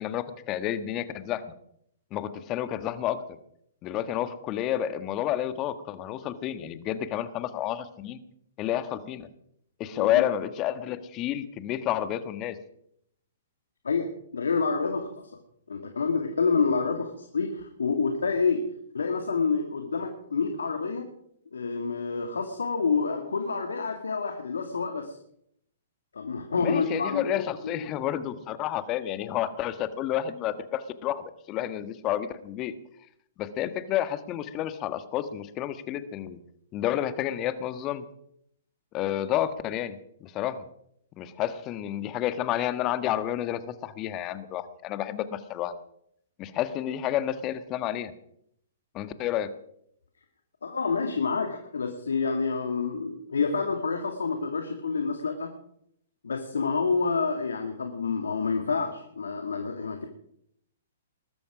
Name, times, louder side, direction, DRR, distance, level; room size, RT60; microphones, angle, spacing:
voice 1, 0.0-1.4 2.1-3.2 3.8-8.2 8.6-9.3 9.8-12.6 26.6-32.7 33.4-36.4 36.7-38.0 38.9-40.6 41.2-45.7 46.4-48.1 48.9-49.5, left 11 dB, 30° left, 12 dB, 1.5 m, -30 dB
voice 2, 13.8-15.3 15.7-18.7 18.9-21.1 21.5-25.2 26.1-27.3 27.6-27.8 50.6-55.5 56.2-60.0, left 4 dB, 80° left, 5 dB, 2.0 m, -28 dB
20.5 x 13.0 x 5.0 m, 0.71 s
hypercardioid pair, 120°, 0 cm